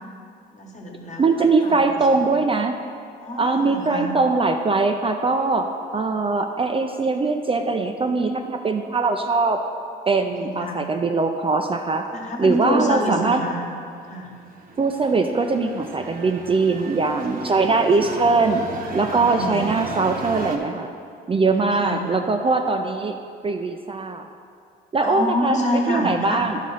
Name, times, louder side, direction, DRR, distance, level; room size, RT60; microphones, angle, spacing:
voice 1, 0.5-2.0 3.2-4.1 10.2-10.8 12.1-13.6 14.1-14.3 19.1-19.9 21.5-22.2 25.0-26.5, left 1 dB, 35° left, 0 dB, 1.4 m, -27 dB
voice 2, 1.2-2.8 3.4-5.7 5.9-9.6 10.1-12.0 12.4-13.4 14.8-18.6 18.9-20.9 21.3-23.2 23.4-24.3 24.9-26.6, right 3 dB, 30° right, 4 dB, 0.4 m, -21 dB
sound 1, 14.2-20.6, right 3 dB, 45° right, 0.9 m, -35 dB
10.5 x 3.6 x 5.5 m, 2.3 s
cardioid pair, 90°, 20 cm